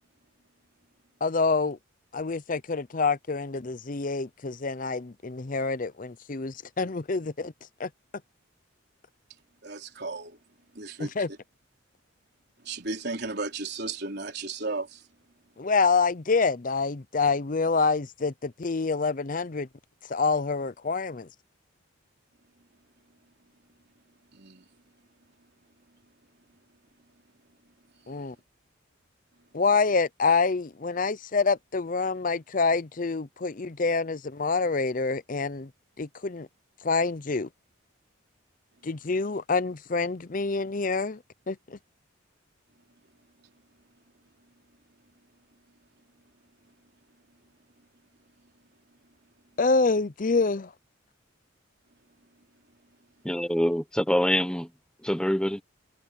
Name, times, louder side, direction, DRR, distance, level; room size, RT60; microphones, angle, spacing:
voice 1, 1.2-1.8 2.1-7.5 7.8-7.9 11.0-11.3 15.6-19.7 20.1-21.3 28.1-28.3 29.5-35.7 36.0-36.5 36.8-37.5 38.8-41.2 41.5-41.8 49.6-50.7, left 4 dB, 40° left, 0.6 m, -26 dB
voice 2, 9.6-10.4 10.7-11.4 12.6-15.1 24.3-24.6, right 3 dB, 50° right, 4.3 m, -35 dB
voice 3, 53.2-54.7 55.0-55.6, equal, 5° left, 0.9 m, -25 dB
head